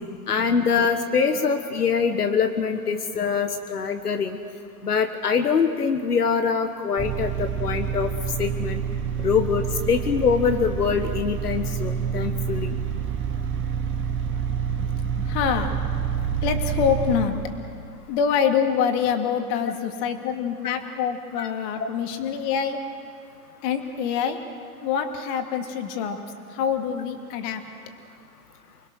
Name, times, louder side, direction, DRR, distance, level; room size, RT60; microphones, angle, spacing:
voice 1, 0.3-4.4 4.8-8.1 8.4-8.8 9.2-12.7 21.4-21.5, left 6 dB, 90° left, 6 dB, 1.4 m, -24 dB
sound 1, 7.0-17.3, right 7 dB, 25° right, 1.9 m, -27 dB
voice 2, 15.2-15.7 16.4-17.6 18.1-22.8 23.6-24.4 24.8-26.2 26.5-27.6, left 7 dB, 45° left, 5 dB, 2.6 m, -25 dB
29.0 x 20.5 x 6.5 m, 2.3 s
hypercardioid pair, 110°, 45 cm